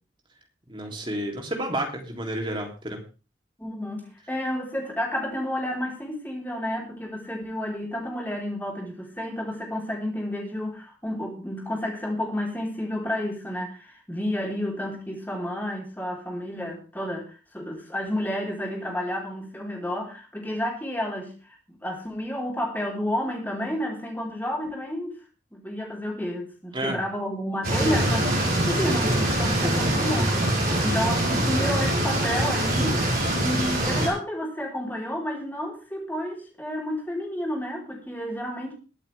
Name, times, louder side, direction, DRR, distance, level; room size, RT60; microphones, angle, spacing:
voice 1, 0.7-3.0 26.7-27.0 27.9-28.1 29.4-29.9 31.3-31.5, right 1 dB, 25° right, 2 dB, 3.3 m, -31 dB
voice 2, 3.6-25.2 25.5-38.7, left 1 dB, 10° left, -2 dB, 4.7 m, -31 dB
sound 1, 27.6-34.1, right 1 dB, 50° right, 6.0 m, -24 dB
22.5 x 8.5 x 3.6 m, 0.34 s
head